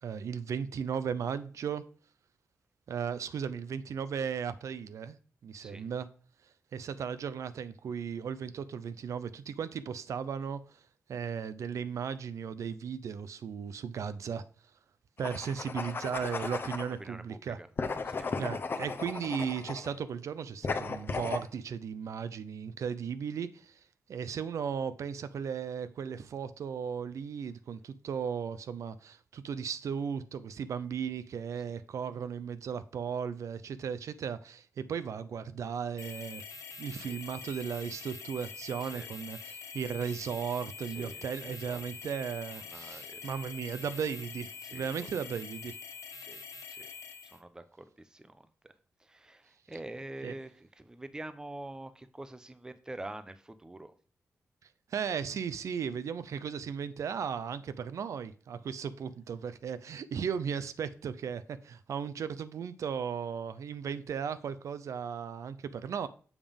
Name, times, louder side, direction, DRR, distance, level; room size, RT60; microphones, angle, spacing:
voice 1, 0.0-1.8 2.9-5.2 5.4-6.1 6.7-10.8 11.1-14.4 15.2-17.6 18.4-23.8 24.1-36.4 36.8-45.8 50.2-50.3 54.9-66.1, right 7 dB, 75° right, 0.4 m, -36 dB
voice 2, 5.6-5.9 17.0-17.7 18.0-18.3 36.9-37.2 38.8-39.1 40.9-41.8 42.6-43.2 44.6-45.1 46.2-46.9 47.2-48.7 49.0-53.9, right 2 dB, 15° right, 0.5 m, -46 dB
sound 1, 15.2-16.9 17.8-19.9 20.6-21.5, left 4 dB, 45° left, 0.6 m, -35 dB
sound 2, 36.0-47.4, left 6 dB, 85° left, 0.8 m, -45 dB
7.1 x 5.2 x 3.5 m
wide cardioid pair, 115°, 5 cm